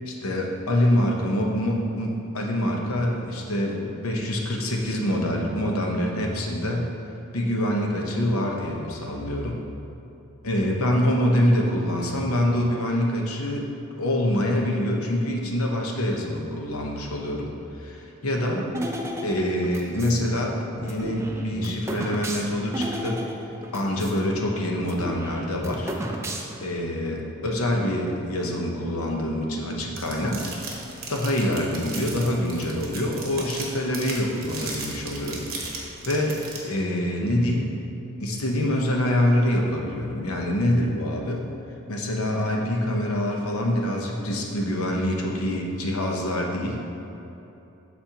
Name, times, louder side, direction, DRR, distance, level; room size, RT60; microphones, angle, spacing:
voice 1, 0.1-6.9 7.3-9.6 10.4-17.5 17.8-18.6 19.2-23.2 23.7-25.9 26.6-30.5 31.1-35.5 35.7-37.7 38.2-41.5 41.9-46.8, left 1 dB, 80° left, 0 dB, 0.9 m, -25 dB
sound 1, 18.7-20.2 20.8-24.2 24.4-24.5 24.8-26.7, right 1 dB, 10° right, 0.4 m, -33 dB
sound 2, 30.0-36.6, right 4 dB, 45° right, 1.2 m, -36 dB
12.5 x 4.3 x 2.9 m, 2.9 s
head